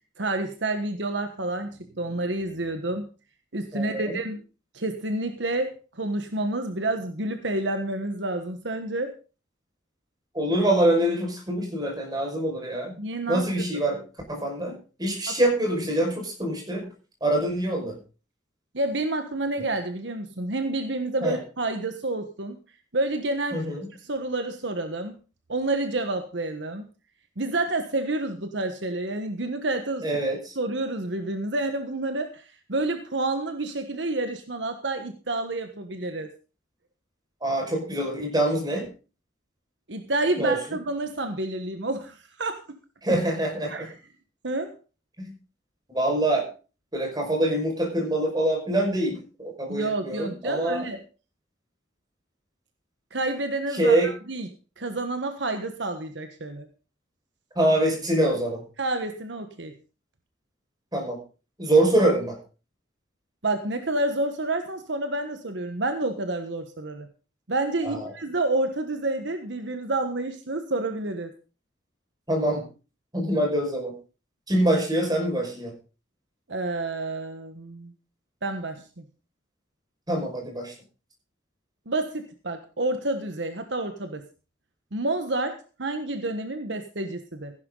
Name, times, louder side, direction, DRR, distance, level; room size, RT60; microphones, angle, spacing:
voice 1, 0.2-3.1 3.5-4.4 4.7-9.1 13.0-13.4 13.7-13.8 15.3-15.4 18.7-22.6 22.9-23.6 24.0-25.2 25.5-26.9 27.4-30.1 30.6-32.4 32.7-36.3 39.9-42.8 43.7-43.9 44.4-44.7 49.7-51.0 53.1-54.5 54.8-56.7 58.8-59.7 63.4-67.1 67.5-71.3 76.5-77.9 78.4-78.8 81.9-84.2 84.9-87.5, right 2 dB, 65° right, 7 dB, 1.4 m, -29 dB
voice 2, 3.7-4.2 10.3-12.9 13.3-14.0 14.3-16.9 17.2-18.0 21.2-21.4 23.5-23.9 30.0-30.5 37.4-38.9 40.4-40.6 43.0-43.9 45.2-45.3 45.9-46.4 46.9-50.8 53.7-54.1 57.6-58.6 60.9-61.2 61.6-62.4 67.8-68.1 72.3-72.7 73.1-73.9 74.5-75.7 80.1-80.7, right 1 dB, 20° right, 1 dB, 5.7 m, -25 dB
15.5 x 11.0 x 3.9 m, 0.34 s
head